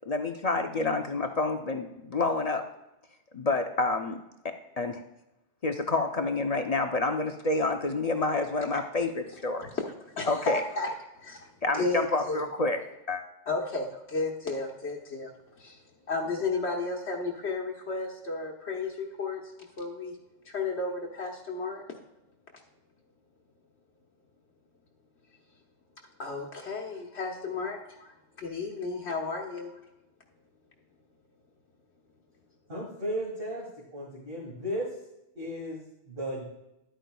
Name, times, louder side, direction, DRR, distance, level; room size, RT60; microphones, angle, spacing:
voice 1, 0.1-2.6 3.3-4.2 4.4-5.0 5.6-9.7 10.3-10.6 11.6-12.8 13.1-13.2, left 3 dB, 45° left, 5 dB, 0.6 m, -28 dB
voice 2, 9.3-12.4 13.5-20.2 20.4-21.8 26.2-29.8, left 3 dB, 65° left, -1 dB, 1.3 m, -33 dB
voice 3, 32.7-33.7 33.9-34.9 35.3-36.5, equal, 50° right, -5 dB, 2.3 m, -35 dB
11.5 x 9.1 x 2.3 m, 0.92 s
omnidirectional pair, 1.2 m